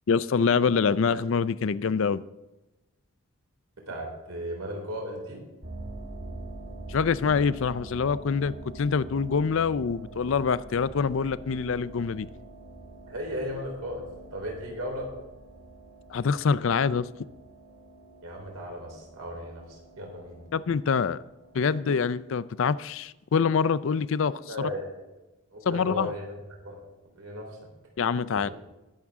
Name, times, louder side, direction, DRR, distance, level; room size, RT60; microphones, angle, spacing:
voice 1, 0.1-2.2 6.9-12.3 16.1-17.1 20.5-21.2 21.5-24.7 25.7-26.1 28.0-28.5, left 5 dB, 60° left, 16 dB, 0.4 m, -25 dB
voice 2, 3.9-5.4 13.1-14.1 14.3-15.1 18.2-20.4 24.5-24.9 25.5-26.3 26.6-26.8 27.1-27.6 28.3-28.5, equal, 85° right, 0 dB, 3.7 m, -36 dB
sound 1, 5.6-22.1, right 2 dB, 60° right, 2.9 m, -45 dB
20.5 x 7.4 x 3.6 m, 1.0 s
head